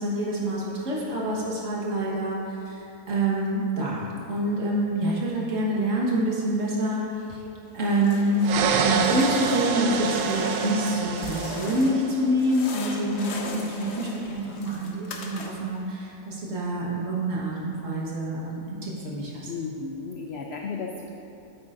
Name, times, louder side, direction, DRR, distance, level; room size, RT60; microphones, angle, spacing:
voice 1, 0.0-7.4 7.7-8.4 8.7-19.5, right 1 dB, 55° right, -4 dB, 1.7 m, -27 dB
sound 1, 7.7-8.6 8.9-12.1 12.4-15.8, left 3 dB, 55° left, 0.8 m, -39 dB
sound 2, 8.4-12.3, right 6 dB, 85° right, 1.2 m, -27 dB
voice 2, 19.5-21.1, left 4 dB, 90° left, 1 dB, 0.5 m, -34 dB
9.5 x 8.5 x 2.5 m, 2.8 s
omnidirectional pair, 1.7 m